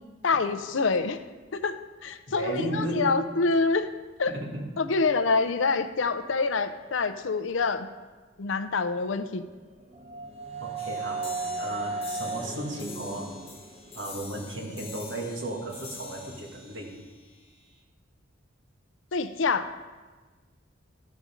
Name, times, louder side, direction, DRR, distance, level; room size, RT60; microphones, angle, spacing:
voice 1, 0.2-1.2 1.5-3.9 4.2-4.3 4.8-7.9 8.4-9.4 19.1-19.7, left 4 dB, 80° left, 10 dB, 0.6 m, -26 dB
voice 2, 2.3-3.3 4.3-4.8 10.6-13.3 13.9-16.9, right 1 dB, 70° right, 0 dB, 1.9 m, -34 dB
sound 1, 9.3-15.0, right 3 dB, 35° right, 0.8 m, -37 dB
sound 2, 10.8-17.8, left 5 dB, 30° left, 0.9 m, -46 dB
13.5 x 5.2 x 5.1 m, 1.3 s
head